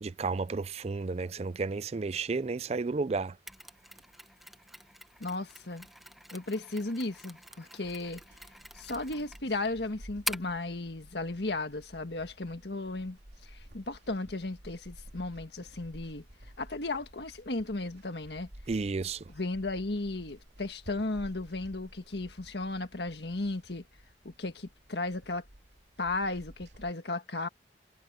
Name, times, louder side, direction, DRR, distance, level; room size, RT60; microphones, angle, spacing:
voice 1, 0.0-3.3 18.7-19.2, right 4 dB, 35° right, 0.4 m, -32 dB
Mechanisms, 3.5-10.6, equal, ahead, 1.1 m, -44 dB
voice 2, 5.2-5.9 6.3-8.2 8.7-16.2 16.6-18.5 19.3-23.8 24.4-25.4 26.0-27.5, left 2 dB, 70° left, 1.7 m, -35 dB
sound 1, 7.8-26.9, equal, 75° right, 2.7 m, -53 dB
head